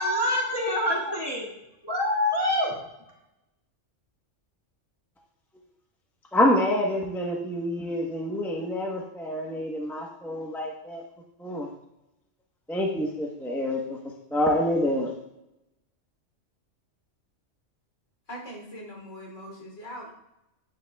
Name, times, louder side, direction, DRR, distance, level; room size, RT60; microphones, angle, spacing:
voice 1, 0.0-1.6 1.8-2.7, left 1 dB, 20° right, -5 dB, 2.0 m, -26 dB
voice 2, 6.3-11.0 11.4-11.7 12.7-14.0 14.3-15.1, left 1 dB, ahead, -1 dB, 1.0 m, -27 dB
voice 3, 18.3-20.1, equal, 70° left, -2 dB, 3.6 m, -41 dB
9.8 x 9.4 x 2.3 m, 0.87 s
omnidirectional pair, 1.3 m